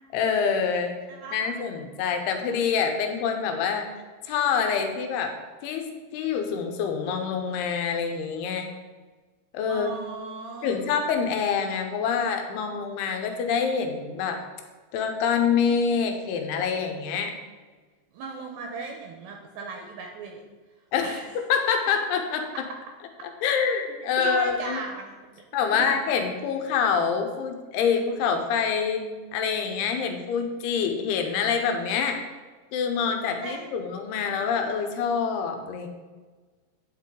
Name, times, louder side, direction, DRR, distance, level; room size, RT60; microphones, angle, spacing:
voice 1, 0.1-0.9 1.3-3.9 4.2-5.3 5.6-5.9 6.1-8.7 9.5-9.9 10.6-14.4 14.9-17.3 20.9-22.5 23.4-24.8 25.5-32.2 32.7-35.9, left 6 dB, 80° left, 5 dB, 2.8 m, -26 dB
voice 2, 1.1-1.6 9.7-10.9 18.1-20.5 21.0-21.4 24.2-25.2 25.7-25.9 33.4-33.6, right 3 dB, 80° right, 2 dB, 2.3 m, -37 dB
9.5 x 5.8 x 3.7 m, 1.4 s
omnidirectional pair, 4.7 m